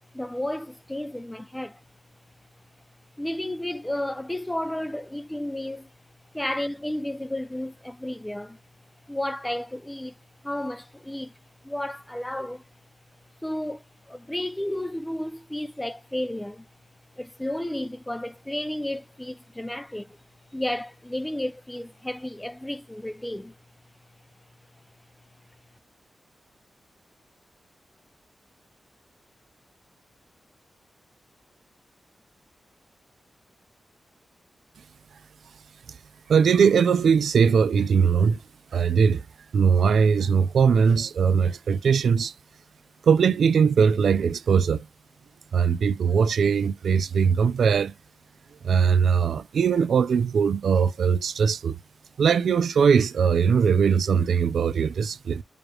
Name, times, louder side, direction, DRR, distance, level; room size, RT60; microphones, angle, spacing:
voice 1, 0.1-1.8 3.2-5.9 6.3-8.6 9.1-10.2 10.4-11.3 11.6-12.6 13.4-16.7 17.2-20.2 20.5-23.6, left 1 dB, 10° left, 0.4 m, -32 dB
voice 2, 36.3-38.4 38.7-39.2 39.5-42.3 43.0-44.9 45.5-47.9 48.6-51.8 52.2-55.4, right 6 dB, 85° right, 0.4 m, -20 dB
4.8 x 2.4 x 3.1 m
wide cardioid pair, 130°, 0 cm